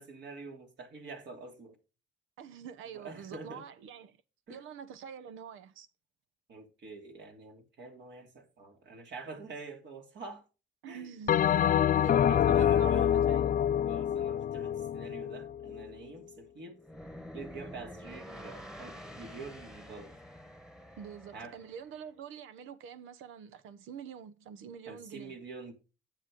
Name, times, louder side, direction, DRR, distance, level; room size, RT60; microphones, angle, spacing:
voice 1, 0.0-1.8 2.9-3.6 4.5-4.6 6.5-10.4 10.9-11.1 11.5-13.2 13.9-16.8 17.3-20.2 21.3-21.6 24.9-25.7, right 3 dB, 65° right, 3.0 m, -46 dB
voice 2, 2.4-4.2 4.5-5.9 10.8-11.5 11.8-13.6 21.0-25.4, right 8 dB, 90° right, 1.0 m, -46 dB
Bell, 11.3-15.9, left 10 dB, 45° left, 0.4 m, -26 dB
sound 1, 16.8-21.9, left 1 dB, 5° right, 1.3 m, -48 dB
10.0 x 7.7 x 3.8 m
cardioid pair, 90°, 20 cm